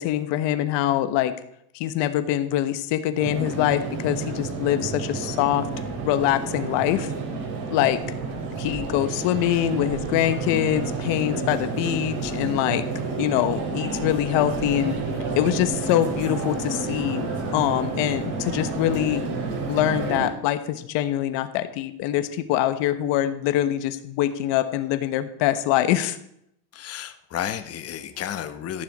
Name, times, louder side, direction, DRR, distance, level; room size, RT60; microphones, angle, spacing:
voice 1, 0.0-1.3 1.7-5.7 6.0-7.1 7.7-8.0 8.6-12.8 13.2-15.0 15.4-19.2 19.7-26.2, left 12 dB, 60° left, 11 dB, 1.2 m, -24 dB
sound 1, 3.2-20.3, right 3 dB, 50° right, 4.0 m, -30 dB
voice 2, 26.7-28.8, left 10 dB, 30° left, 9 dB, 1.0 m, -32 dB
13.5 x 11.5 x 4.2 m, 0.73 s
cardioid pair, 140°, 48 cm